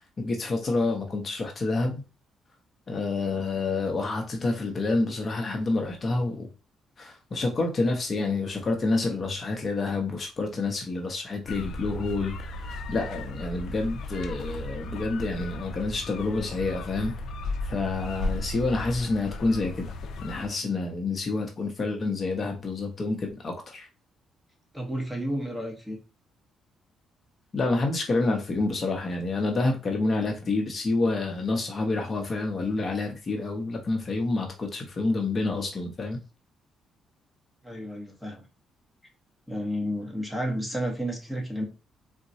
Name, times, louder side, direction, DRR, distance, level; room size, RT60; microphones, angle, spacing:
voice 1, 0.2-2.0 2.9-6.5 7.0-17.2 17.6-19.9 20.2-23.9 27.5-36.2, left 3 dB, 40° left, 0.7 m, -28 dB
sound 1, 11.5-20.5, left 1 dB, 75° left, 0.4 m, -35 dB
voice 2, 24.7-26.0 37.6-38.4 39.5-41.6, equal, 5° right, 1.0 m, -31 dB
3.9 x 2.2 x 2.7 m
cardioid pair, 90°, 0 cm